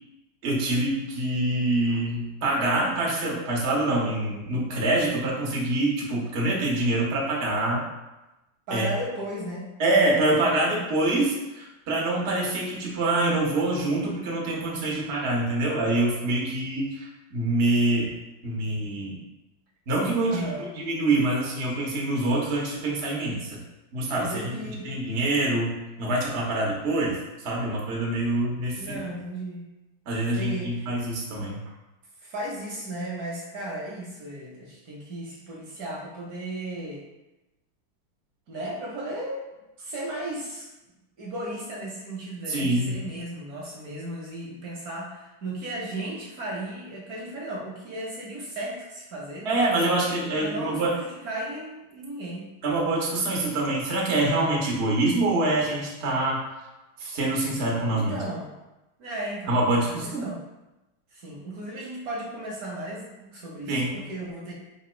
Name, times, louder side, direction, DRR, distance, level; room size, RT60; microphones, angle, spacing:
voice 1, 0.4-7.8 8.7-8.9 9.8-18.1 18.4-19.2 19.9-20.4 20.8-23.6 23.9-29.0 30.1-31.6 42.5-43.0 49.4-50.9 52.6-56.4 57.0-58.1 59.5-60.3 63.7-64.0, right 2 dB, 85° right, -3 dB, 0.5 m, -25 dB
voice 2, 8.7-9.7 20.2-20.7 24.1-24.9 28.7-29.7 30.4-30.9 32.2-37.0 38.5-39.4 39.8-40.7 41.2-49.6 50.3-52.5 57.9-58.5 59.0-60.4 61.1-64.5, right 1 dB, 65° right, -3 dB, 0.9 m, -35 dB
3.9 x 2.2 x 4.3 m, 1.0 s
omnidirectional pair, 2.4 m